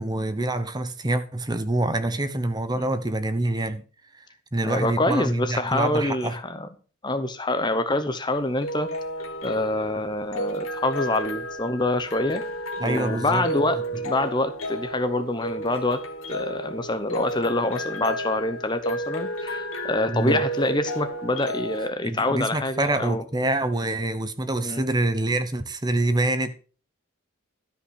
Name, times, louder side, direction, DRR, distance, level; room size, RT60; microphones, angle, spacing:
voice 1, 0.0-3.8 4.1-4.3 4.5-6.4 12.8-13.5 20.1-20.4 22.0-26.5, right 2 dB, 20° right, 1.0 m, -26 dB
voice 2, 4.6-6.7 7.0-8.9 9.4-12.4 12.8-16.0 16.3-23.2 24.6-24.8, left 2 dB, 20° left, 0.8 m, -26 dB
sound 1, 8.4-21.9, right 1 dB, 80° left, 1.7 m, -32 dB
13.0 x 5.7 x 6.4 m
head